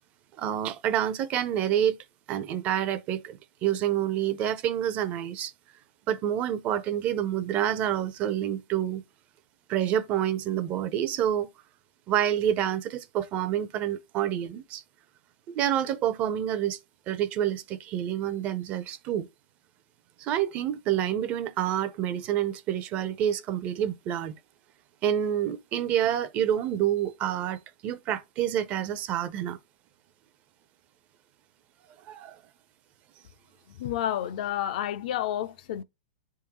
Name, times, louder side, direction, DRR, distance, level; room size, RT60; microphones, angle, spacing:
voice 1, 0.4-2.0 2.3-5.5 6.1-9.0 9.7-11.5 12.1-14.8 15.5-16.8 17.1-19.3 20.2-24.4 25.0-29.6 32.1-32.4, right 10 dB, 25° right, 0.5 m, -28 dB
voice 2, 33.8-35.8, left 11 dB, 50° left, 0.5 m, -30 dB
10.0 x 3.6 x 2.9 m
hypercardioid pair, 150°, 5 cm